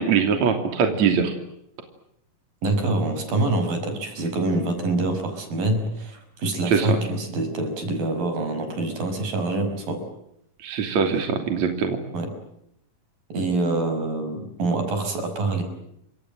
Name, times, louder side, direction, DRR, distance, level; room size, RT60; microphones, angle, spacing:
voice 1, 0.0-1.3 6.7-7.0 10.6-12.0, right 6 dB, 55° right, 5 dB, 4.1 m, -22 dB
voice 2, 2.6-10.0 12.1-12.3 13.3-15.6, right 2 dB, 85° right, 7 dB, 7.6 m, -25 dB
29.5 x 26.0 x 7.7 m, 0.77 s
omnidirectional pair, 3.9 m